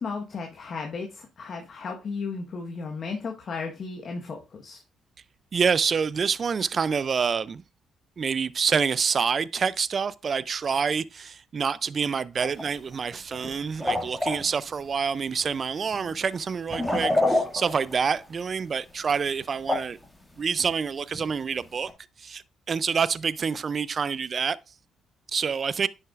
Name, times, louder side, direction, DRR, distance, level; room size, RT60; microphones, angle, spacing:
voice 1, 0.0-4.8, left 4 dB, 50° left, 1.2 m, -34 dB
voice 2, 5.5-7.6 8.2-20.0 20.4-21.9 22.2-24.6 25.3-25.9, right 6 dB, 45° right, 0.4 m, -27 dB
sound 1, 12.4-12.6 12.9-13.5 13.8-14.4 15.5-15.6 15.9-16.1 16.7-18.3 19.1-19.4 19.7-20.0 20.7-20.8 21.1-21.3 21.9-22.0, left 1 dB, 5° left, 2.1 m, -27 dB
10.5 x 6.5 x 2.5 m
cardioid pair, 90°, 0 cm